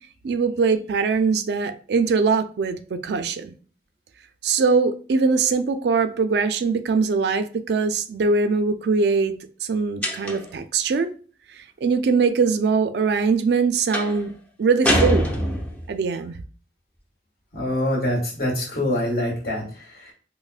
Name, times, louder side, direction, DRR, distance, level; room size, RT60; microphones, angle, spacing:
voice 1, 0.2-3.5 4.4-9.3 9.6-11.1 11.8-14.3 14.6-15.3 15.9-16.4, right 4 dB, 65° right, 0.3 m, -22 dB
sound 1, 10.0-10.6 13.9-14.2 14.8-15.9, equal, 10° left, 0.5 m, -23 dB
voice 2, 17.5-20.1, left 1 dB, 55° left, 1.6 m, -25 dB
5.4 x 2.1 x 2.4 m
head